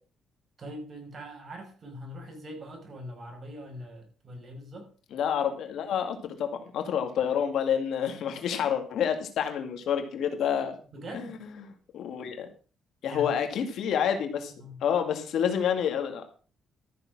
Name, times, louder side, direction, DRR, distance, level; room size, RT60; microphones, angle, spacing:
voice 1, 0.6-4.9 10.9-11.4 13.0-13.4 14.6-14.8, equal, 40° right, 5.3 m, -42 dB
voice 2, 5.1-10.8 11.1-11.3 11.6-12.5 13.0-14.5 14.8-16.2, left 8 dB, 75° left, 2.3 m, -28 dB
13.5 x 6.8 x 6.2 m
cardioid pair, 90°, 0 cm